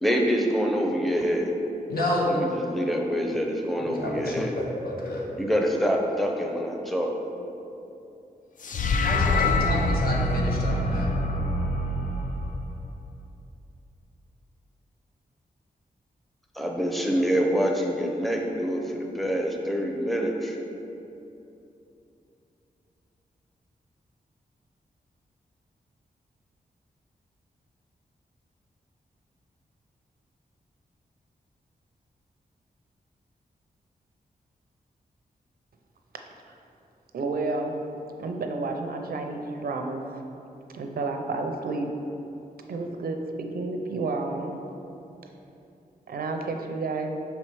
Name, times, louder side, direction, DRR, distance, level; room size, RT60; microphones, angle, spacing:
voice 1, 0.0-1.5 2.2-4.6 5.4-7.1 16.5-20.6, equal, ahead, 0 dB, 0.7 m, -26 dB
voice 2, 1.9-2.3 3.9-5.3 9.0-11.1, left 1 dB, 75° left, -3 dB, 1.1 m, -30 dB
sound 1, 8.6-13.0, left 2 dB, 60° left, 0.5 m, -25 dB
voice 3, 37.1-37.8 38.2-40.0 40.7-41.9 42.7-44.6 46.1-47.1, right 3 dB, 75° right, 4 dB, 0.6 m, -30 dB
5.6 x 4.4 x 4.6 m, 2.8 s
wide cardioid pair, 90°, 15 cm